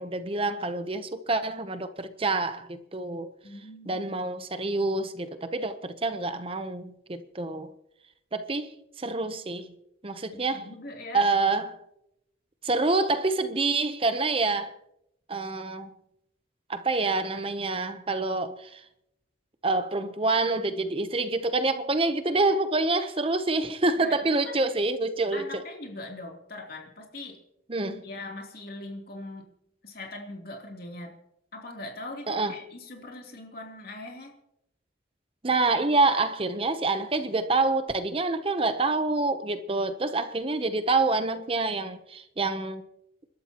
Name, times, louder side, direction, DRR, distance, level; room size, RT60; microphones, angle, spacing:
voice 1, 0.0-3.3 3.9-7.7 8.3-9.7 10.0-10.7 11.1-11.8 12.6-14.7 15.3-15.9 16.7-18.8 19.6-25.6 27.7-28.0 32.3-32.6 35.4-42.8, right 3 dB, 30° right, 0.7 m, -27 dB
voice 2, 3.4-4.0 10.3-11.3 24.0-24.1 24.4-24.6 25.3-27.4 28.0-29.5 29.8-31.1 31.5-34.3, left 2 dB, 50° left, 3.0 m, -41 dB
29.5 x 12.5 x 2.9 m
head